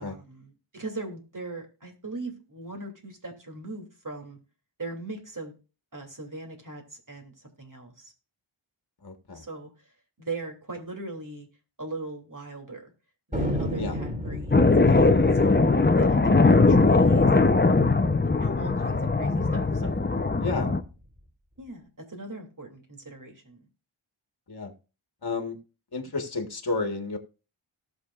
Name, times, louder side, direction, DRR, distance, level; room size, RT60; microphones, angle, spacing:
voice 1, 0.0-4.4 4.8-5.6 5.9-8.1 9.3-11.5 11.8-12.9 13.3-14.6 14.9-15.6 16.0-17.6 17.9-20.0 20.5-20.7 21.6-23.7 26.0-26.1, right 2 dB, 40° right, 3.1 m, -40 dB
voice 2, 9.0-9.4 13.8-13.9 14.8-15.4 20.4-20.7 24.5-24.7 25.2-25.6 25.9-27.2, left 3 dB, 45° left, 1.7 m, -31 dB
Thunder, 13.3-18.1 18.4-18.5 18.7-19.3 19.7-20.9, equal, 15° right, 3.7 m, -34 dB
sound 1, 14.5-20.8, left 3 dB, 20° left, 0.9 m, -20 dB
18.0 x 6.4 x 2.5 m
cardioid pair, 45°, 50 cm